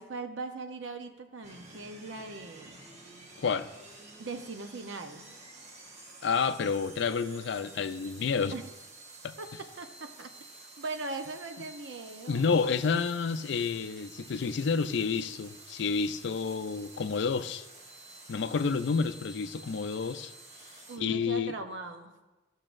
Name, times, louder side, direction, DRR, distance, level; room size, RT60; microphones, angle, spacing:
voice 1, 0.0-2.8 4.2-5.3 8.5-8.6 9.4-10.3 10.8-12.5 20.9-22.1, right 3 dB, 80° right, 0.7 m, -40 dB
sound 1, 1.4-21.0, right 2 dB, 35° right, 1.1 m, -50 dB
voice 2, 3.4-3.7 6.2-8.5 9.2-9.4 12.3-17.7 18.3-20.3 21.0-21.5, left 5 dB, 65° left, 0.4 m, -29 dB
14.0 x 6.4 x 2.5 m
head